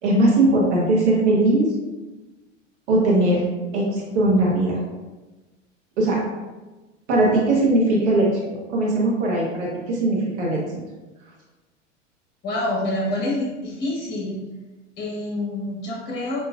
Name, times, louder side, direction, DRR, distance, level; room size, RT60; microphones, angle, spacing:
voice 1, 0.0-1.7 2.9-3.4 3.7-4.8 6.0-6.2 7.1-8.3 8.7-10.6, right 2 dB, 65° right, -3 dB, 1.3 m, -19 dB
voice 2, 12.4-14.4 15.0-16.5, left 1 dB, 25° left, -2 dB, 1.1 m, -27 dB
5.8 x 2.9 x 2.4 m, 1.2 s
hypercardioid pair, 90°, 38 cm